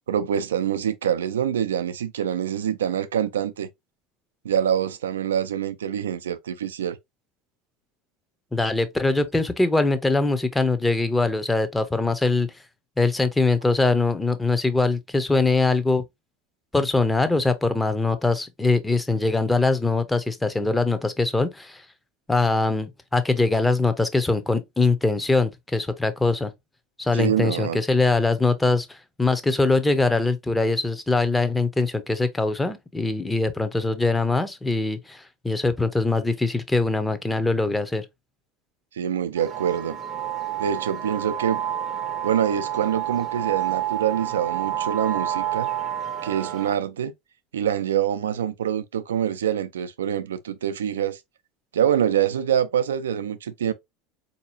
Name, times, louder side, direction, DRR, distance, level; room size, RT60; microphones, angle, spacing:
voice 1, 0.1-3.7 4.4-7.0 27.1-27.8 38.9-40.0 40.6-41.6 42.2-45.7 46.2-47.1 47.5-51.2 51.7-53.7, right 9 dB, 85° right, 0.4 m, -25 dB
voice 2, 8.5-12.5 13.0-16.0 16.7-21.8 22.3-26.5 27.0-38.0, left 3 dB, 10° left, 0.7 m, -22 dB
sound 1, 39.4-46.8, right 11 dB, 40° right, 0.6 m, -29 dB
4.0 x 2.7 x 2.6 m
hypercardioid pair, 80°, 0 cm